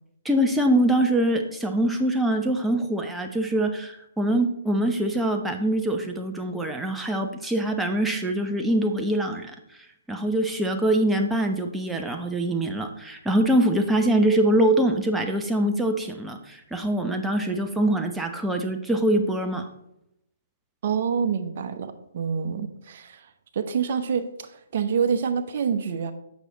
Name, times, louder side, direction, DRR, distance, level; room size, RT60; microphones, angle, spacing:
voice 1, 0.2-9.5 10.1-19.7 22.5-22.7, right 1 dB, 5° right, 3 dB, 0.8 m, -24 dB
voice 2, 20.8-23.3 23.5-26.1, right 6 dB, 50° right, 7 dB, 0.9 m, -27 dB
8.2 x 6.1 x 4.0 m, 0.80 s
figure-of-eight pair, 130°, 0 cm